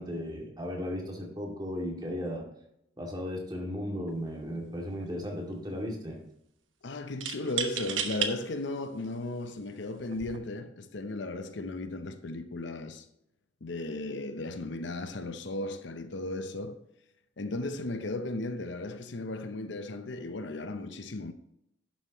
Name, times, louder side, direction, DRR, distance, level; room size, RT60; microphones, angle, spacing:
voice 1, 0.0-2.5 3.0-6.2, equal, 20° right, 2.3 m, -35 dB
sound 1, 4.1-4.3 4.6-5.3 7.2-8.3 9.0-9.1 10.0-10.4, right 7 dB, 75° right, 1.0 m, -33 dB
voice 2, 6.8-13.1 13.6-16.8 17.4-21.3, left 2 dB, 65° left, 0.7 m, -36 dB
11.0 x 7.3 x 3.1 m
head